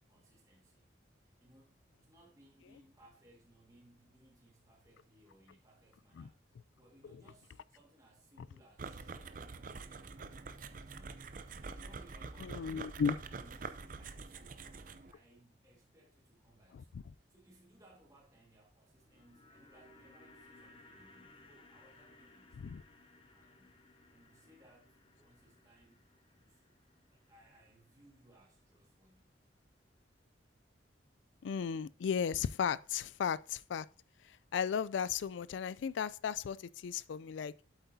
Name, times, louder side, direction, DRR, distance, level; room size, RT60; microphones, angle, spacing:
voice 1, 0.1-0.8 1.2-10.4 10.7-12.7 13.3-22.9 23.3-23.8 24.1-26.7 27.1-29.4, right 1 dB, 15° right, 1.7 m, -65 dB
sound 1, 8.8-15.1, right 4 dB, 45° right, 0.5 m, -46 dB
voice 2, 12.4-13.2 22.6-22.8 31.4-33.9 34.3-37.5, left 7 dB, 75° left, 0.3 m, -35 dB
sound 2, 18.9-29.2 29.4-29.5, left 2 dB, 30° left, 0.6 m, -62 dB
8.2 x 7.8 x 2.7 m
head